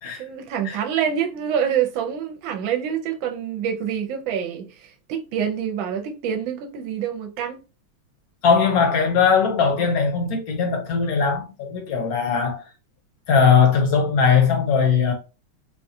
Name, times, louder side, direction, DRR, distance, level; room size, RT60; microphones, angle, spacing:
voice 1, 0.2-7.6, right 8 dB, 75° right, 1.4 m, -26 dB
voice 2, 8.4-12.6 13.3-15.1, left 6 dB, 60° left, 1.0 m, -19 dB
3.9 x 2.3 x 2.7 m
omnidirectional pair, 2.3 m